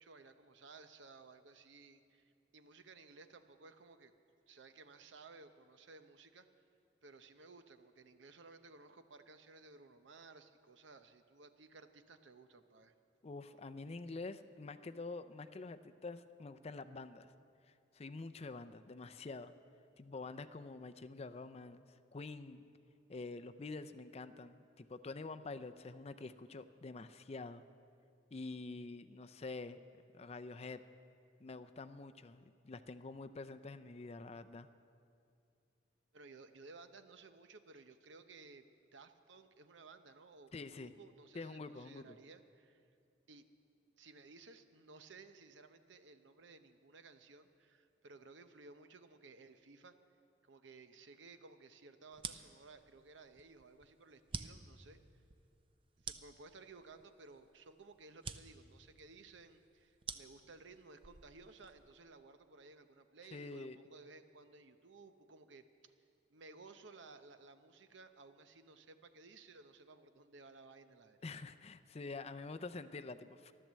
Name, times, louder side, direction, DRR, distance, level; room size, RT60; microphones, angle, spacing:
voice 1, 0.0-4.1 4.5-6.5 7.0-12.9 36.1-38.6 38.9-42.8 43.3-43.4 44.0-49.9 50.4-55.0 56.0-65.6 66.3-71.4, right 3 dB, 80° right, 9 dB, 0.8 m, -58 dB
voice 2, 13.2-17.3 17.9-19.5 20.0-21.9 22.1-22.6 23.1-27.6 28.3-29.8 30.1-30.8 31.4-34.7 40.5-40.9 41.3-42.2 63.3-63.8 71.2-73.5, left 3 dB, 35° left, 10 dB, 0.5 m, -47 dB
sound 1, 52.1-62.0, right 5 dB, 30° right, 0.5 m, -50 dB
13.5 x 12.0 x 7.5 m, 2.4 s
head